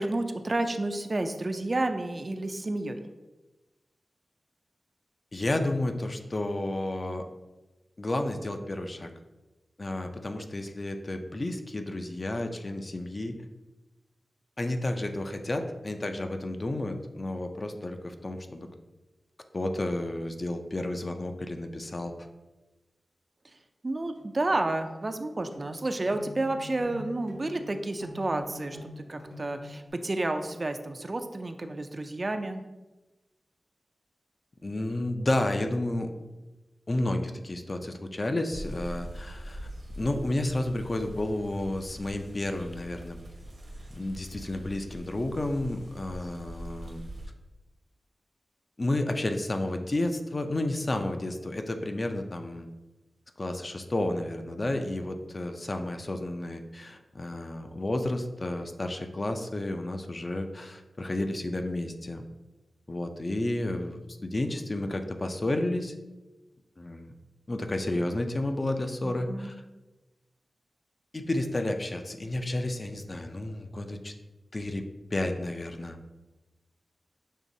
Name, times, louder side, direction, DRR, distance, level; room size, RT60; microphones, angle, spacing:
voice 1, 0.0-3.0 23.8-32.6 69.0-69.5, right 2 dB, 40° right, 7 dB, 0.3 m, -31 dB
voice 2, 5.3-7.3 8.0-9.1 9.8-13.4 14.6-18.7 19.5-22.1 34.6-36.1 36.9-39.7 40.0-43.2 43.9-47.0 48.8-52.7 53.4-62.2 62.9-65.9 66.8-67.1 67.5-69.6 71.1-74.1 74.5-74.8 75.1-76.0, left 1 dB, 35° left, 6 dB, 0.4 m, -31 dB
sound 1, 24.0-25.0 25.5-25.8 26.1-29.9, left 1 dB, 75° left, 1.5 m, -45 dB
sound 2, 38.5-47.3, right 1 dB, 75° right, 1.0 m, -43 dB
6.5 x 3.0 x 2.6 m, 1.1 s
wide cardioid pair, 95°, 0 cm